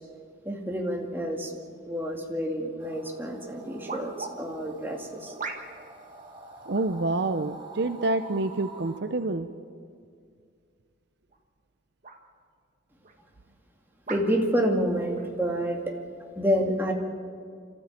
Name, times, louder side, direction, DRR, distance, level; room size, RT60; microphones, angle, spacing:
voice 1, 0.4-1.5 1.9-5.3 14.1-15.9 16.4-16.9, equal, 10° right, 0 dB, 2.3 m, -28 dB
sound 1, 2.8-9.0, right 3 dB, 25° right, 2.0 m, -46 dB
sound 2, 2.9-3.0 3.9-4.3 5.4-5.9 6.7-7.0 8.0-8.4 9.2-9.3 11.2-11.5 12.0-12.2 13.0-13.2 14.1-14.3 15.1-15.3, right 4 dB, 45° right, 1.8 m, -39 dB
voice 2, 6.7-9.5, right 2 dB, 65° right, 10 dB, 0.7 m, -27 dB
28.5 x 13.5 x 8.9 m, 2.2 s
head